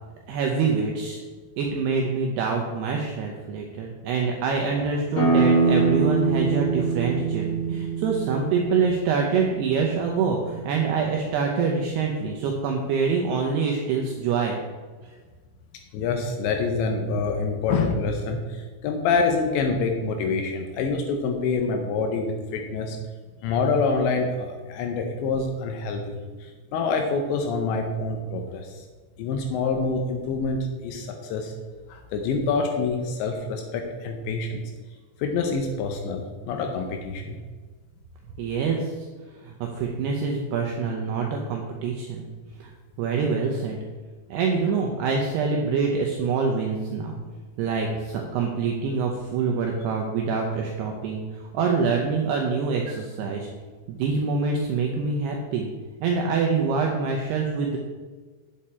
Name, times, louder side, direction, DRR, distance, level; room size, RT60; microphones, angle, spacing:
voice 1, 0.3-1.2 1.6-14.6 38.4-39.1 39.4-42.3 42.6-42.7 43.0-43.8 44.3-47.2 47.6-53.5 53.9-55.7 56.0-57.8, right 5 dB, 80° right, 1 dB, 2.4 m, -25 dB
sound 1, 5.1-10.5, right 4 dB, 40° left, 3.2 m, -24 dB
voice 2, 15.9-23.0 23.4-28.9 29.2-31.5 31.9-34.6 35.2-37.4, left 4 dB, 80° left, 4 dB, 2.8 m, -26 dB
8.7 x 8.6 x 4.3 m, 1.4 s
omnidirectional pair, 5.7 m